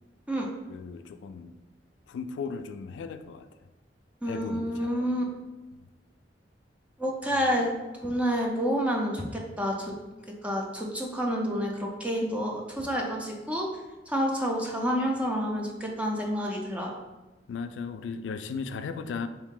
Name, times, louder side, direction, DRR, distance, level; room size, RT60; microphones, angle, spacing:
voice 1, 0.7-1.5 2.1-3.5 4.2-5.0 17.5-19.3, left 5 dB, 90° left, 10 dB, 0.3 m, -36 dB
voice 2, 4.2-5.2 7.0-7.7 8.0-9.9 10.4-13.7 14.1-16.9, equal, 10° right, -1 dB, 0.5 m, -29 dB
3.6 x 2.7 x 3.7 m, 1.1 s
head